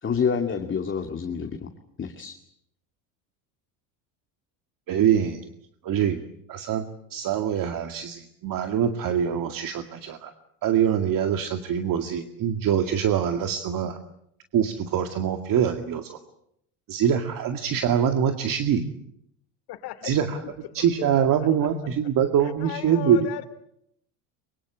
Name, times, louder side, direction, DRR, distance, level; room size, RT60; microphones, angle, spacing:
voice 1, 0.0-1.7 2.0-2.4, left 6 dB, 30° left, 4 dB, 2.5 m, -27 dB
voice 2, 4.9-5.4 5.8-6.2 6.5-6.8 7.1-10.3 10.6-14.0 14.5-16.2 16.9-18.8 20.0-20.4 20.7-23.3, right 8 dB, 50° right, 6 dB, 2.2 m, -24 dB
voice 3, 19.7-20.1 20.4-20.5 20.8-21.1 21.4-21.5 22.4-23.4, left 13 dB, 60° left, 12 dB, 2.9 m, -36 dB
24.0 x 23.5 x 8.6 m, 0.75 s
supercardioid pair, 100°, 42 cm